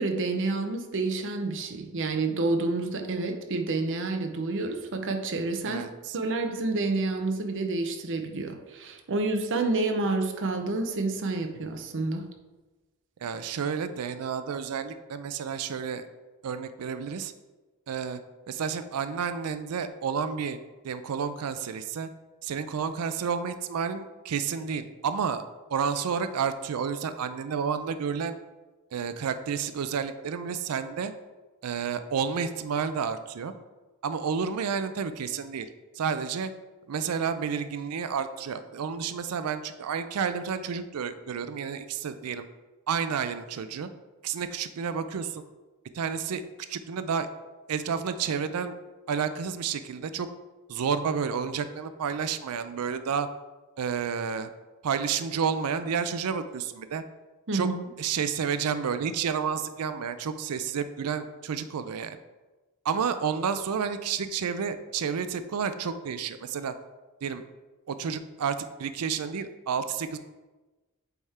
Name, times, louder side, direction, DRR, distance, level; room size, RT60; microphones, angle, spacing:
voice 1, 0.0-5.8 6.1-12.3 57.5-57.8, right 3 dB, 60° right, 5 dB, 0.7 m, -29 dB
voice 2, 5.7-6.2 13.2-16.1 16.4-17.3 17.9-18.2 18.5-20.6 20.8-22.1 22.4-25.4 25.7-28.4 28.9-31.1 31.6-33.5 34.0-35.7 35.9-36.5 36.9-42.4 42.9-43.9 44.2-45.4 45.9-46.4 46.7-47.3 47.7-48.8 49.1-50.3 50.7-53.3 53.8-54.5 54.8-57.0 57.5-57.7 58.0-62.2 62.8-66.7 67.2-67.4 67.9-70.2, right 6 dB, 85° right, 11 dB, 0.4 m, -30 dB
8.1 x 3.5 x 4.2 m, 1.2 s
head